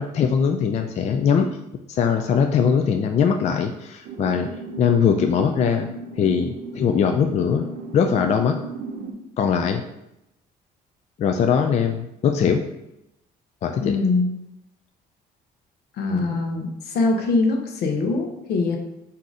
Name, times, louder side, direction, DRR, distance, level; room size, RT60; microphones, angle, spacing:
voice 1, 0.0-1.5 1.9-4.5 4.8-5.9 6.1-7.6 7.9-8.6 9.4-9.8 11.2-12.6 13.6-14.0, left 7 dB, 40° left, 5 dB, 0.4 m, -21 dB
sound 1, 4.0-9.1, right 3 dB, 70° right, 0.7 m, -36 dB
voice 2, 13.8-14.3 16.0-18.8, left 3 dB, 75° left, 3 dB, 0.9 m, -23 dB
3.9 x 2.8 x 4.7 m, 0.85 s
cardioid pair, 110°, 17 cm